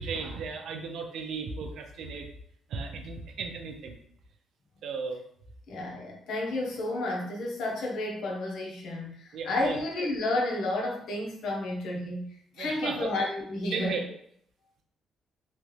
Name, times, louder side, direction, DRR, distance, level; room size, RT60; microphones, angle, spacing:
voice 1, 0.0-2.3 2.7-4.0 4.8-5.2 9.3-9.8 12.6-13.1 13.7-14.0, right 4 dB, 75° right, 4 dB, 0.5 m, -35 dB
voice 2, 5.7-14.0, left 2 dB, 75° left, -1 dB, 0.8 m, -31 dB
3.0 x 2.3 x 3.2 m, 0.67 s
cardioid pair, 90°, 0 cm